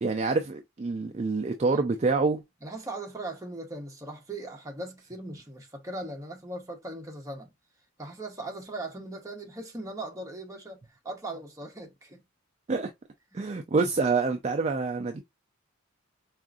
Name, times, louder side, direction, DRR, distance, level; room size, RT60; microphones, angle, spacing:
voice 1, 0.0-2.4 12.7-12.9 13.3-15.2, right 4 dB, 30° right, 0.3 m, -26 dB
voice 2, 2.6-7.5 8.0-12.2 13.3-13.5, right 2 dB, 15° right, 0.8 m, -39 dB
4.5 x 2.5 x 2.3 m
head